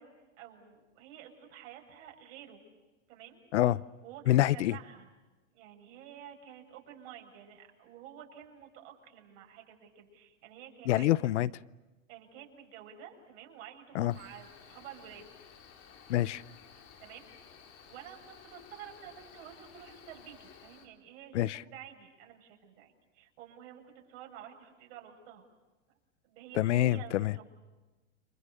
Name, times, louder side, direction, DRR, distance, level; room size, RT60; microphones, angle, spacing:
voice 1, 0.0-2.6 3.1-3.4 4.0-5.1 5.5-11.1 12.1-15.3 17.0-17.3 17.9-25.4 26.2-27.4, right 9 dB, 55° right, 2 dB, 7.1 m, -50 dB
voice 2, 3.5-3.8 4.3-4.7 10.9-11.5 13.9-14.1 16.1-16.4 21.3-21.6 26.6-27.3, left 14 dB, 70° left, 20 dB, 0.8 m, -26 dB
Cricket, 14.1-20.9, left 7 dB, 40° left, 4.7 m, -55 dB
29.5 x 27.0 x 6.7 m, 1.2 s
hypercardioid pair, 125°, 37 cm